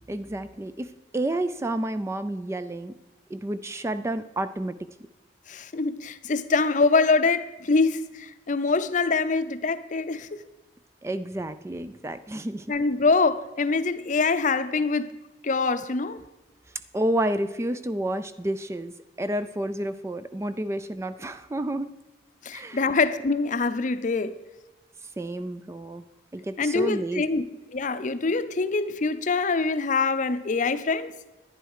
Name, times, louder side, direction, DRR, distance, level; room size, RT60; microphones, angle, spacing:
voice 1, 0.1-2.9 3.3-4.9 11.0-12.7 16.9-22.0 22.5-22.9 25.2-26.0 26.3-27.5, right 1 dB, 15° right, 0.3 m, -30 dB
voice 2, 5.5-10.3 12.7-15.1 15.4-16.2 22.4-24.4 26.6-31.1, left 4 dB, 45° left, 0.6 m, -24 dB
11.0 x 10.0 x 4.8 m
head